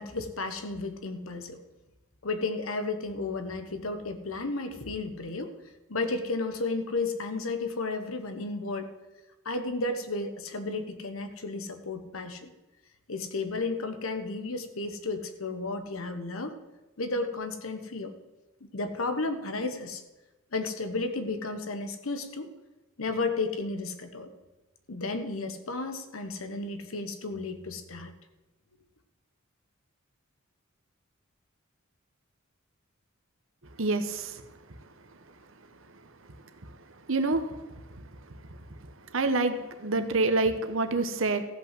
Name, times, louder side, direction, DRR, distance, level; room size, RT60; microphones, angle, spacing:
voice 1, 0.0-1.6 2.2-5.5 5.9-8.9 9.4-12.5 13.1-16.6 17.0-18.1 18.7-20.0 20.5-22.5 23.0-24.3 24.9-28.1, left 3 dB, 85° left, 8 dB, 1.2 m, -33 dB
voice 2, 33.8-34.3 37.1-37.5 39.1-41.4, right 3 dB, 70° right, 9 dB, 1.1 m, -26 dB
14.5 x 5.5 x 7.6 m, 1.1 s
head